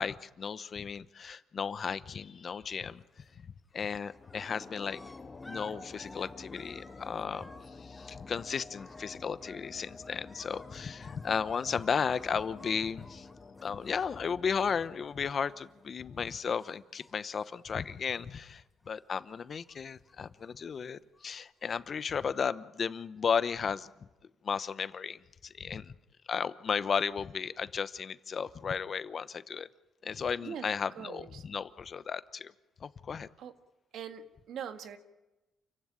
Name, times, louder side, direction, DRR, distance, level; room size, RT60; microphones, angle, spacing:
voice 1, 0.0-3.0 3.7-5.0 5.5-7.5 7.8-13.3 13.6-23.9 24.4-25.9 26.3-29.7 30.0-32.5 32.8-33.3, left 6 dB, 45° left, 14 dB, 0.9 m, -34 dB
sound 1, 3.0-3.4 3.7-16.0 16.2-18.4 18.7-19.3 19.6-21.5 22.2-22.3, left 1 dB, 10° left, 6.6 m, -55 dB
sound 2, 4.1-16.6, left 4 dB, 30° left, 1.7 m, -50 dB
voice 2, 30.9-31.4 33.4-33.5 33.9-35.0, right 8 dB, 75° right, 7 dB, 1.9 m, -42 dB
28.5 x 16.0 x 9.0 m, 1.1 s
cardioid pair, 90°, 0 cm